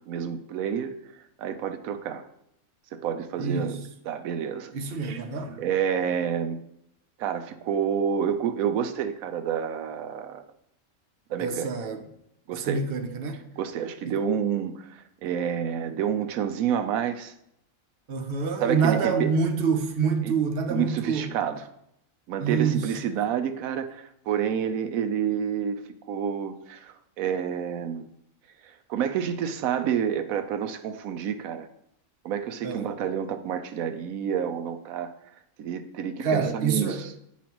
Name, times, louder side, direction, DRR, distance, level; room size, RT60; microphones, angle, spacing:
voice 1, 0.1-0.9 1.4-2.2 2.9-3.8 4.0-4.7 5.6-6.6 7.2-10.4 11.3-11.7 12.5-12.9 13.6-17.3 18.6-19.3 20.2-20.3 20.7-21.7 22.3-28.1 28.6-31.7 32.2-35.1 35.6-37.1, right 8 dB, 90° right, 9 dB, 1.1 m, -29 dB
voice 2, 3.4-3.7 4.7-5.6 11.4-12.0 12.6-13.4 14.1-14.2 18.1-21.3 22.4-22.8 32.6-32.9 36.2-37.0, right 5 dB, 50° right, 5 dB, 0.9 m, -26 dB
9.3 x 5.7 x 3.0 m, 0.76 s
omnidirectional pair, 1.4 m